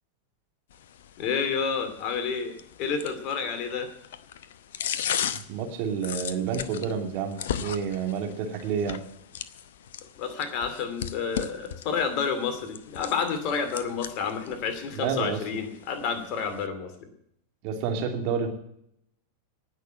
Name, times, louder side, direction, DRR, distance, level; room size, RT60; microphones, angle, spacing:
sound 1, 0.7-16.7, left 9 dB, 60° left, 0.8 m, -38 dB
voice 1, 1.2-3.9 10.2-16.9, left 6 dB, 40° left, 8 dB, 2.5 m, -30 dB
voice 2, 5.5-9.0 14.9-15.4 17.6-18.5, right 6 dB, 45° right, 3 dB, 2.7 m, -29 dB
19.0 x 6.5 x 8.8 m, 0.74 s
figure-of-eight pair, 90°, 0 cm